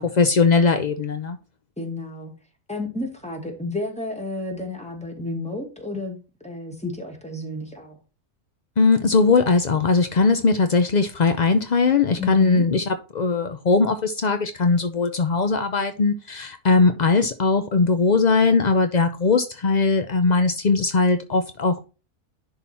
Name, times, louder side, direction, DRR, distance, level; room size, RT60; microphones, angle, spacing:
voice 1, 0.2-1.4 8.8-21.8, left 4 dB, 60° left, 0.4 m, -20 dB
voice 2, 1.8-2.3 2.7-6.2 6.4-8.0 12.2-12.7, left 2 dB, 5° left, 2.0 m, -31 dB
11.0 x 4.0 x 4.3 m
omnidirectional pair, 1.6 m